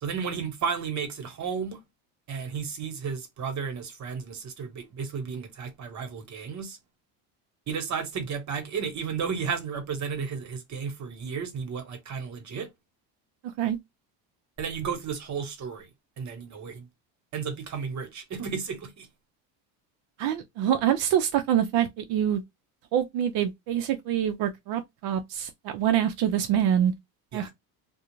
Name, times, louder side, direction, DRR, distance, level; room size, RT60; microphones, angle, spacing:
voice 1, 0.0-1.8 2.3-6.8 7.7-12.7 14.6-15.9 16.2-16.9 17.3-19.1 27.3-27.5, right 6 dB, 40° right, 1.1 m, -33 dB
voice 2, 20.2-22.4 22.9-26.9 27.3-27.5, right 10 dB, 60° right, 0.5 m, -25 dB
2.4 x 2.1 x 3.0 m
supercardioid pair, 95°, 43 cm